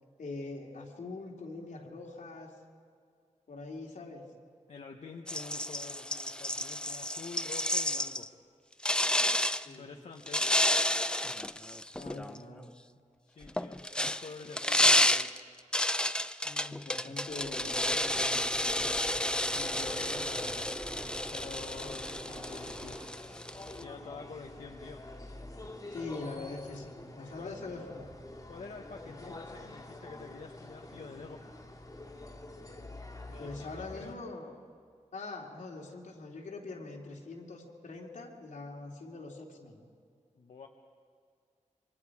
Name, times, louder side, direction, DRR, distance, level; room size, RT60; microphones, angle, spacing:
voice 1, 0.2-2.6 3.5-4.2 9.5-9.9 12.0-12.7 16.4-19.1 21.8-22.1 25.9-28.1 29.0-29.3 33.3-34.5 35.1-39.8, left 3 dB, 85° left, -1 dB, 2.9 m, -43 dB
voice 2, 4.7-8.3 9.8-10.5 13.3-15.3 19.4-20.7 21.3-23.0 23.7-25.0 27.2-27.6 28.5-31.4 33.3-34.2 40.4-40.7, left 4 dB, 65° left, 2 dB, 1.2 m, -47 dB
sound 1, 5.3-8.3 8.8-9.7 10.3-12.4 13.4-23.8, left 1 dB, 5° left, 0.5 m, -30 dB
sound 2, 17.3-23.1, right 1 dB, 15° right, 2.5 m, -46 dB
sound 3, 18.8-34.2, left 2 dB, 30° left, 2.0 m, -47 dB
27.5 x 23.5 x 4.9 m, 2.2 s
wide cardioid pair, 105°, 13 cm